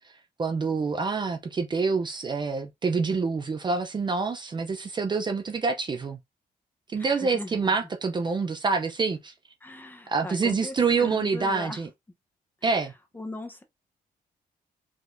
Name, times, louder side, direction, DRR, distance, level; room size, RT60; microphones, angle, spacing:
voice 1, 0.4-6.2 6.9-9.3 10.1-11.9 12.6-12.9, right 4 dB, 30° right, 0.6 m, -26 dB
voice 2, 7.0-7.9 9.6-11.8 13.1-13.6, left 2 dB, 10° left, 0.9 m, -39 dB
5.0 x 3.9 x 2.6 m
wide cardioid pair, 150°, 16 cm